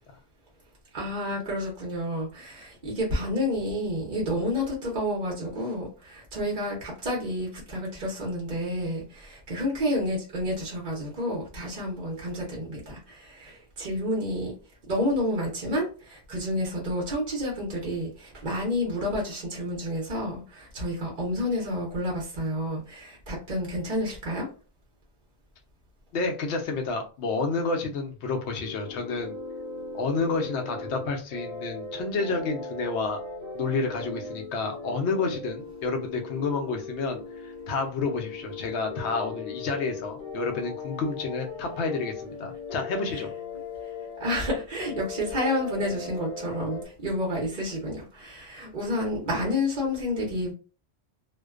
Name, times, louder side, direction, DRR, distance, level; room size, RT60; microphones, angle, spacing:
voice 1, 0.9-14.5 14.9-24.5 43.1-43.2 44.2-50.5, left 1 dB, 50° right, 0.8 m, -30 dB
voice 2, 26.1-29.4 29.9-33.2 33.5-43.3, left 3 dB, 85° left, 0.9 m, -30 dB
sound 1, 28.6-46.8, left 4 dB, 45° left, 0.6 m, -38 dB
2.4 x 2.2 x 2.3 m
omnidirectional pair, 1.1 m